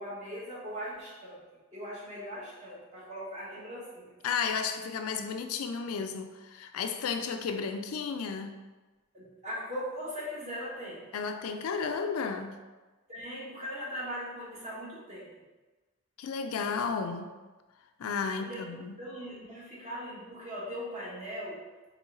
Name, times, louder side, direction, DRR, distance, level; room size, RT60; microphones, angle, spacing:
voice 1, 0.0-1.4 1.7-4.1 9.1-11.1 13.1-15.3 18.3-18.6 19.0-21.6, equal, 30° right, -7 dB, 1.2 m, -39 dB
voice 2, 4.2-8.6 11.1-12.6 16.2-17.3 18.0-19.0, left 5 dB, 75° left, 6 dB, 0.4 m, -33 dB
4.0 x 3.3 x 3.8 m, 1.2 s
head